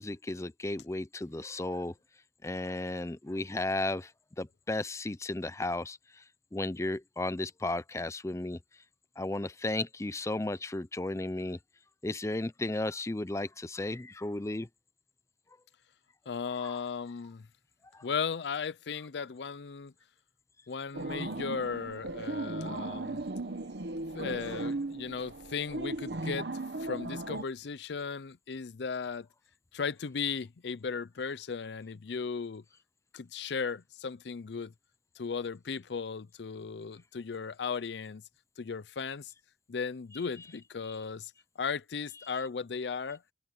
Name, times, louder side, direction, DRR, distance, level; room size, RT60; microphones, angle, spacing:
voice 1, 0.0-1.9 2.4-4.1 4.4-6.2 6.5-8.6 9.2-11.6 12.0-14.7 16.6-16.8 17.9-18.0 42.3-42.4, left 2 dB, 15° left, 0.5 m, -34 dB
voice 2, 16.3-17.5 18.0-19.9 20.7-23.2 24.1-26.5 26.8-29.3 29.7-32.6 33.1-34.7 35.2-38.2 38.6-39.3 39.7-41.3 41.6-43.2, left 5 dB, 70° left, 0.5 m, -36 dB
sound 1, 20.9-27.4, right 2 dB, 65° right, 1.0 m, -37 dB
head